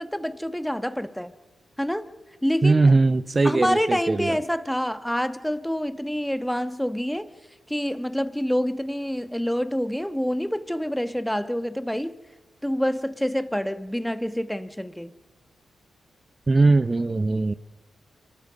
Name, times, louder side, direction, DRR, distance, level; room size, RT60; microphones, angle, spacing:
voice 1, 0.0-1.3 1.8-2.1 2.4-2.9 3.4-7.3 7.7-12.2 12.6-15.1, equal, 5° left, 1.3 m, -27 dB
voice 2, 2.6-4.4 16.5-17.5, right 3 dB, 35° right, 0.7 m, -20 dB
26.5 x 19.5 x 5.4 m
supercardioid pair, 45°, 0 cm